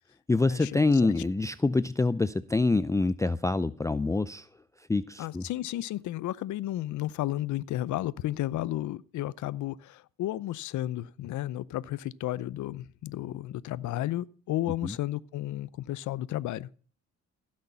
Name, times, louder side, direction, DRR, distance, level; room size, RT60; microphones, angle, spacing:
voice 1, 0.3-4.5 4.9-5.4 14.8-14.9, left 3 dB, 10° left, 0.4 m, -26 dB
voice 2, 5.2-16.8, left 14 dB, 75° left, 0.6 m, -33 dB
16.0 x 6.5 x 5.5 m
cardioid pair, 90°, 30 cm